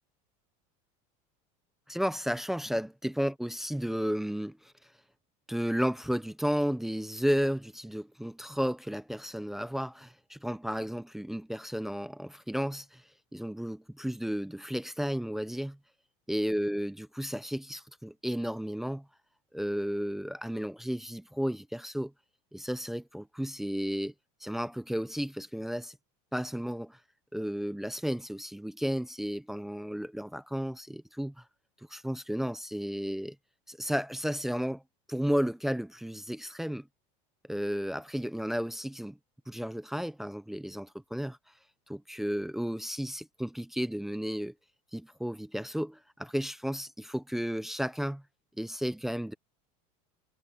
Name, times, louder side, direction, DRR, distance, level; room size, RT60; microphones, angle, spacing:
voice 1, 1.9-4.7 5.5-13.0 13.3-15.8 16.3-19.0 19.5-22.1 22.5-24.1 24.4-26.0 26.3-27.0 27.3-31.3 31.9-33.4 33.7-34.8 35.1-36.9 37.5-39.2 39.5-41.4 41.9-44.5 44.9-48.2 48.6-49.3, equal, ahead, 0.4 m, -33 dB
cardioid pair, 175°, 18 cm